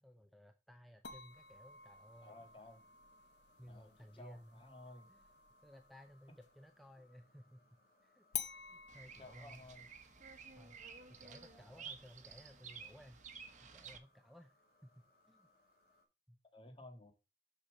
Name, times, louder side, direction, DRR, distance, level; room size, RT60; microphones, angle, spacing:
voice 1, 0.0-2.4 3.6-4.6 5.1-5.2 5.6-8.2 8.5-9.7 10.6-15.5 16.3-16.4, equal, ahead, 0.5 m, -59 dB
sound 1, 1.0-6.6 8.3-13.3, left 10 dB, 75° left, 0.8 m, -52 dB
sound 2, 1.3-16.1, left 2 dB, 60° left, 2.9 m, -73 dB
voice 2, 2.2-2.8 3.7-5.1 9.2-9.9 11.5-11.9 16.5-17.1, left 1 dB, 30° left, 1.8 m, -56 dB
Bird vocalization bird call bird song, 8.9-14.0, right 6 dB, 45° right, 1.1 m, -53 dB
6.8 x 5.8 x 5.2 m
head